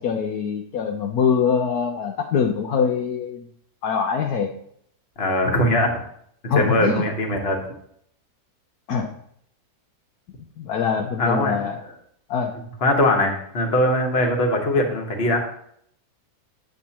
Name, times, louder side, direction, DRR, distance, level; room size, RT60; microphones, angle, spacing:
voice 1, 0.0-3.4 3.8-4.5 6.5-7.0 8.9-9.1 10.6-11.8 12.3-12.5, left 6 dB, 70° left, 2 dB, 1.1 m, -23 dB
voice 2, 5.2-6.0 6.4-7.7 11.2-11.5 12.8-15.4, left 1 dB, 40° left, 2 dB, 1.4 m, -21 dB
8.5 x 7.9 x 2.9 m, 0.68 s
omnidirectional pair, 1.8 m